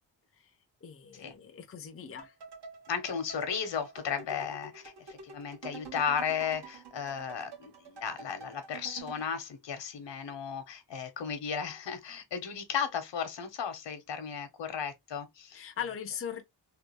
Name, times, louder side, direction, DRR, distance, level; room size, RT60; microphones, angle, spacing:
voice 1, 0.8-2.3 15.5-16.4, left 8 dB, 30° left, 0.6 m, -40 dB
sound 1, 2.2-9.3, right 5 dB, 65° right, 1.4 m, -48 dB
voice 2, 2.9-15.7, left 7 dB, 75° left, 1.0 m, -35 dB
3.3 x 2.4 x 3.0 m
wide cardioid pair, 140°, 43 cm